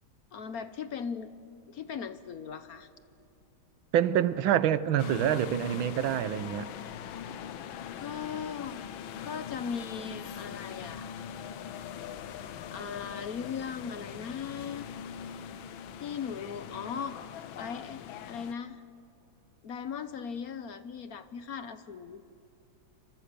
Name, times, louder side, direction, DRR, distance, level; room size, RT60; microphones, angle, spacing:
voice 1, 0.3-1.3 1.7-2.9 8.0-8.8 9.2-11.1 12.7-14.9 16.0-17.2 17.6-18.0 18.3-18.8 19.6-22.2, left 6 dB, 55° left, 1.2 m, -38 dB
voice 2, 3.9-6.7, right 10 dB, 90° right, 1.6 m, -26 dB
sound 1, 5.0-18.5, left 9 dB, 90° left, 1.7 m, -42 dB
28.5 x 25.0 x 6.8 m
omnidirectional pair, 2.1 m